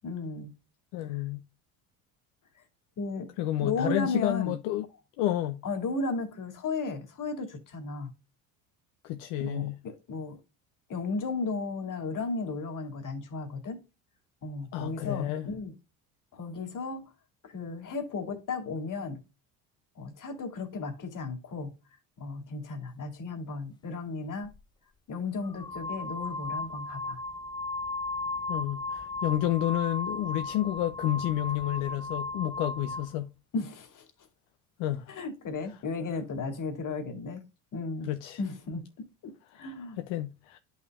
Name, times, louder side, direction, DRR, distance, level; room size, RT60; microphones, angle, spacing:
voice 1, 0.0-0.5 1.1-1.2 2.6-2.7 3.0-3.3 3.6-4.6 5.6-8.1 9.4-10.4 10.9-13.8 14.4-15.7 16.3-17.0 17.4-19.2 20.0-21.7 22.2-24.5 25.1-27.2 33.5-34.1 35.1-37.4 37.7-38.1 38.4-38.8 39.2-40.0, left 3 dB, 45° left, 2.6 m, -34 dB
voice 2, 0.9-1.4 3.4-4.9 5.2-5.6 9.0-9.8 14.7-15.5 28.5-33.3 34.8-35.1 38.0-38.4 39.5-39.7 40.0-40.6, left 14 dB, 70° left, 0.9 m, -30 dB
sound 1, 24.4-24.6 25.4-33.1, left 3 dB, 10° left, 0.5 m, -36 dB
11.0 x 5.8 x 2.4 m
hypercardioid pair, 80°, 44 cm